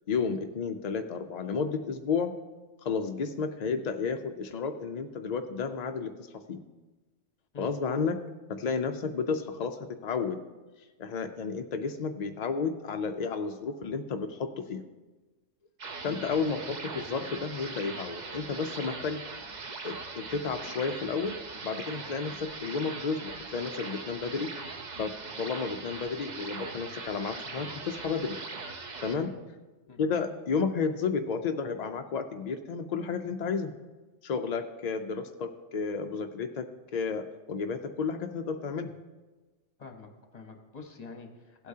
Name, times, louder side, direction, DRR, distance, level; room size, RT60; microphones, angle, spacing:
voice 1, 0.1-2.3 2.8-6.6 7.6-8.2 8.5-9.8 10.0-10.4 11.0-14.8 16.0-19.2 19.8-21.3 21.6-24.5 25.0-28.4 29.0-29.3 30.0-33.7 34.2-36.6 36.9-38.9, left 5 dB, 65° left, 6 dB, 0.4 m, -32 dB
sound 1, 15.8-29.2, right 4 dB, 40° right, 0.8 m, -41 dB
voice 2, 39.8-41.7, left 4 dB, 35° left, 4 dB, 1.0 m, -46 dB
16.0 x 8.3 x 2.7 m, 1.2 s
omnidirectional pair, 1.3 m